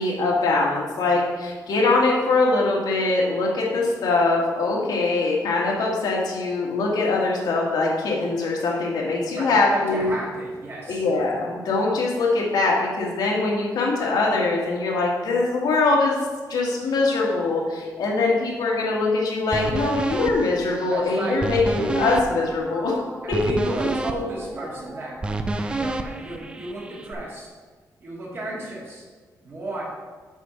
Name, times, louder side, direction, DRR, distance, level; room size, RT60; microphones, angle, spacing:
voice 1, 0.0-10.1 10.9-16.2 16.5-22.9, left 3 dB, 75° left, -3 dB, 1.9 m, -22 dB
voice 2, 9.3-11.0 20.9-21.4 23.2-25.2 25.7-27.5 28.0-29.1 29.4-29.8, right 1 dB, 35° right, -3 dB, 1.9 m, -33 dB
sound 1, 19.5-27.1, right 2 dB, 15° right, 0.4 m, -30 dB
7.4 x 4.6 x 5.8 m, 1.4 s
wide cardioid pair, 175°, 7 cm